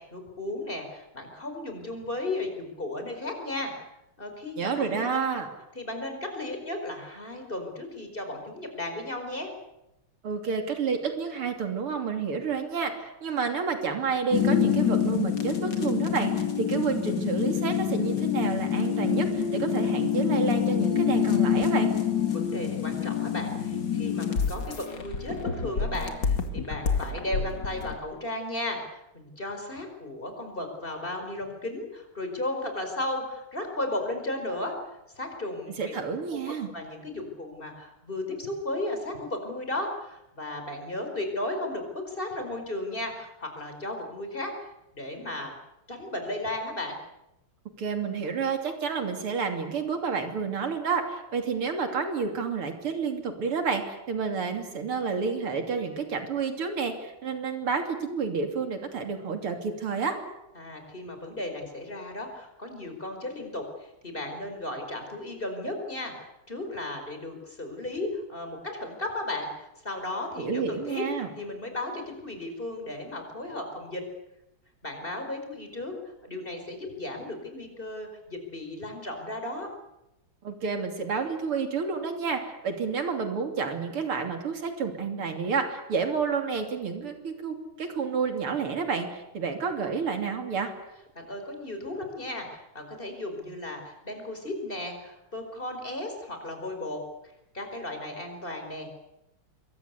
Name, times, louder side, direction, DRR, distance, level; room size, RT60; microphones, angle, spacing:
voice 1, 0.0-3.7 4.2-5.2 5.7-9.5 22.0-34.7 35.2-35.9 36.3-45.5 45.9-47.0 60.5-71.0 71.4-74.0 74.8-75.9 76.2-79.7 91.1-97.0 97.5-98.9, left 1 dB, 25° left, 5 dB, 5.1 m, -35 dB
voice 2, 4.6-5.5 10.2-21.9 35.8-36.7 47.8-60.2 70.4-71.3 80.4-90.7, right 5 dB, 80° right, 5 dB, 3.8 m, -30 dB
sound 1, 14.3-28.0, left 8 dB, 55° left, 2.8 m, -27 dB
25.5 x 23.0 x 8.3 m, 0.89 s
omnidirectional pair, 2.4 m